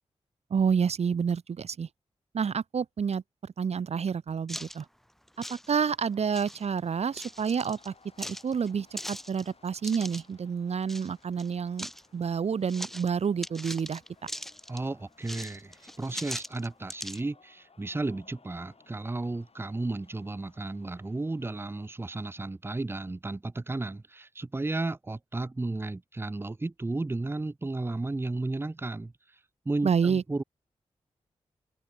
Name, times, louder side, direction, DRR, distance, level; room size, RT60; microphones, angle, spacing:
voice 1, 0.5-1.9 2.3-4.8 5.5-14.3 29.8-30.2, right 6 dB, 60° right, 0.7 m, -29 dB
sound 1, 4.5-4.8 5.3-6.0 6.3-6.6 7.1-7.9 8.2-10.2 10.9-11.1 11.4-12.1 12.7-13.1 13.4-14.8 15.2-17.2, equal, ahead, 3.4 m, -40 dB
sound 2, 6.9-21.9, left 4 dB, 55° left, 6.3 m, -62 dB
voice 2, 14.7-29.1 29.7-30.4, right 2 dB, 20° right, 0.6 m, -33 dB
open air
cardioid pair, 40°, 12 cm